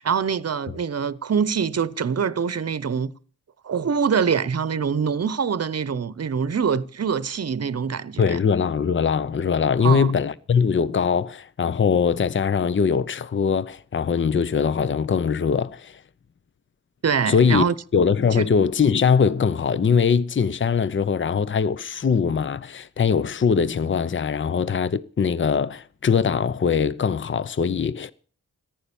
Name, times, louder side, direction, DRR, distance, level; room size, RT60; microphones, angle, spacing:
voice 1, 0.0-3.1 3.6-8.4 9.8-10.1 17.0-17.7 18.4-18.5, right 6 dB, 50° right, 0.9 m, -24 dB
voice 2, 8.2-16.0 17.3-17.6 17.9-28.1, left 6 dB, 35° left, 0.7 m, -21 dB
14.5 x 10.5 x 7.0 m
cardioid pair, 75°, 33 cm